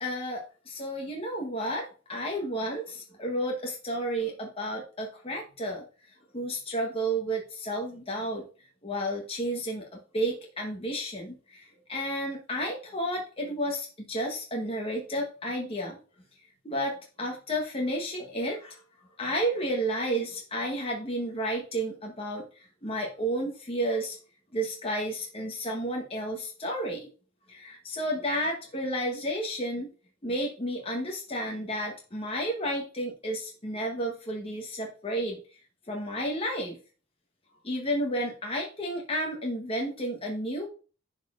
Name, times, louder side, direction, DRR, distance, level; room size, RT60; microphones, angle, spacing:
voice 1, 0.0-5.8 6.3-8.5 8.8-16.0 16.6-18.8 19.2-24.2 24.5-27.1 27.5-29.9 30.2-35.4 35.9-36.8 37.6-40.7, right 1 dB, 30° left, 0 dB, 1.0 m, -32 dB
10.5 x 4.0 x 2.4 m, 0.36 s
head